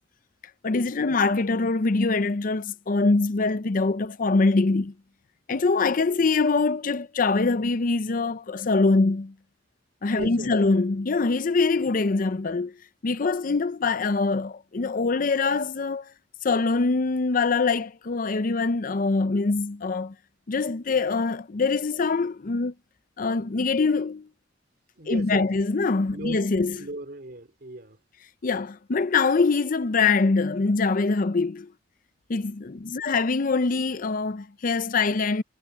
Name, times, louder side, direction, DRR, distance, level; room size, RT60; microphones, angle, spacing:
voice 1, 0.6-4.9 5.5-9.3 10.0-12.7 13.0-16.1 16.4-20.1 20.5-22.7 23.2-24.3 25.1-26.9 28.4-31.7 32.3-35.4, left 3 dB, 50° left, 0.6 m, -24 dB
voice 2, 10.1-10.6 25.0-25.5 26.1-28.0 32.8-33.1, right 1 dB, 55° right, 2.6 m, -38 dB
head